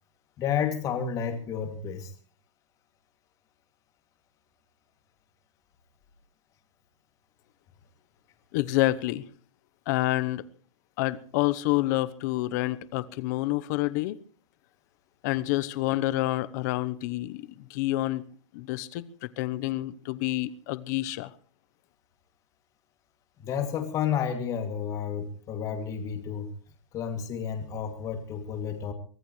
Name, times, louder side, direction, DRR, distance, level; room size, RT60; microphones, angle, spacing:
voice 1, 0.4-2.1 23.4-26.5 26.9-28.9, left 8 dB, 20° left, 6 dB, 2.6 m, -31 dB
voice 2, 8.5-9.2 9.9-10.4 11.0-14.2 15.2-18.2 18.5-21.3, left 17 dB, 35° left, 16 dB, 0.9 m, -28 dB
24.0 x 15.5 x 3.2 m, 0.42 s
hypercardioid pair, 160°, 15 cm